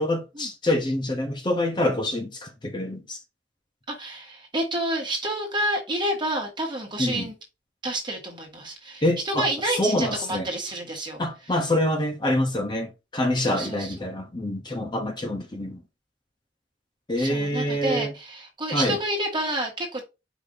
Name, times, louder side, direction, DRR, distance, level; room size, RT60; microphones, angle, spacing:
voice 1, 0.0-3.2 7.0-7.3 9.0-9.5 9.8-10.5 11.2-15.8 17.1-18.1 18.7-19.0, left 1 dB, 25° left, 0.7 m, -26 dB
voice 2, 3.9-7.3 7.8-11.2 13.3-14.1 17.1-20.0, right 1 dB, 25° right, 1.5 m, -29 dB
5.0 x 2.6 x 3.8 m
head